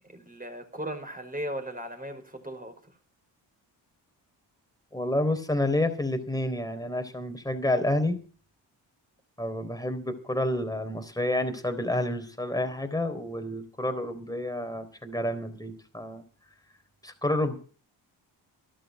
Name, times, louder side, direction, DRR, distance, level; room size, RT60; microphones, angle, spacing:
voice 1, 0.1-2.7, right 1 dB, 20° right, 5.5 m, -37 dB
voice 2, 4.9-8.2 9.4-16.2 17.0-17.6, left 1 dB, 10° left, 3.9 m, -29 dB
12.5 x 12.0 x 6.6 m
supercardioid pair, 50°, 47 cm